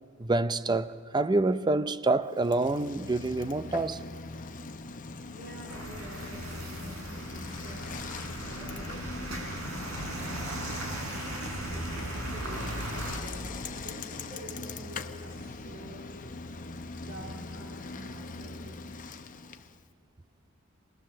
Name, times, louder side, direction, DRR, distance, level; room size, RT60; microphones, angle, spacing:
voice 1, 0.2-4.0, right 2 dB, 20° right, 0.5 m, -27 dB
Bicycle, 2.3-19.9, left 3 dB, 40° left, 0.8 m, -41 dB
voice 2, 5.3-16.2 17.0-18.9, equal, 50° right, 3.6 m, -47 dB
sound 1, 5.7-13.2, right 1 dB, 85° right, 4.3 m, -37 dB
24.0 x 18.5 x 7.4 m
head